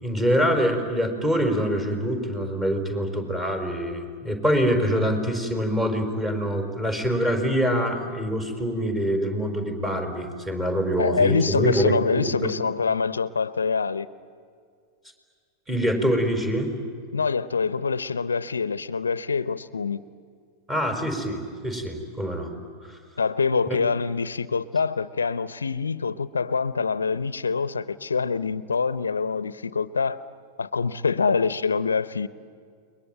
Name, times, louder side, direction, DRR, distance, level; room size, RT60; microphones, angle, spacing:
voice 1, 0.0-12.5 15.7-16.7 20.7-22.5 22.8-23.0 23.7-23.8, equal, 15° right, 5 dB, 4.9 m, -25 dB
voice 2, 11.0-14.1 17.1-20.0 23.2-30.2 30.6-32.3, left 5 dB, 80° left, 17 dB, 0.7 m, -25 dB
29.5 x 22.0 x 8.9 m, 2.1 s
figure-of-eight pair, 95°, 0 cm